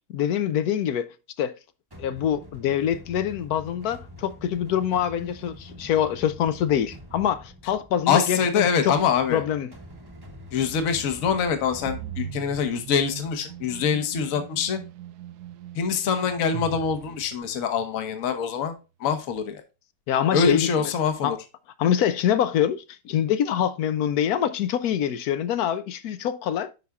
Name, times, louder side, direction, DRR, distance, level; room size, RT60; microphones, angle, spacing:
voice 1, 0.1-1.1 1.4-1.5 2.0-9.0 9.3-9.7 20.1-20.7 21.2-21.4 21.8-26.7, left 9 dB, 70° left, 1.0 m, -25 dB
sound 1, 1.9-13.8, equal, 15° right, 0.9 m, -46 dB
voice 2, 8.1-9.4 10.5-14.8 15.7-19.6 20.3-21.4, left 6 dB, 55° left, 1.3 m, -24 dB
sound 2, 11.9-17.8, right 11 dB, 70° right, 1.1 m, -39 dB
9.3 x 5.5 x 2.3 m
omnidirectional pair, 1.9 m